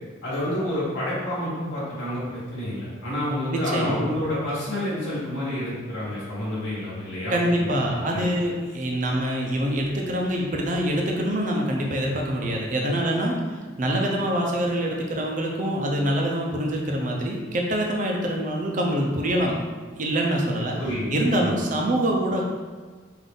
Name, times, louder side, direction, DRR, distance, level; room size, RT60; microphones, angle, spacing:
voice 1, 0.2-8.3 20.8-21.1 21.4-21.6, left 1 dB, 75° left, -9 dB, 1.2 m, -29 dB
voice 2, 3.5-4.1 7.3-19.6 20.0-20.8 21.1-22.4, right 1 dB, 40° right, 0 dB, 0.5 m, -25 dB
3.8 x 2.6 x 3.5 m, 1.4 s
head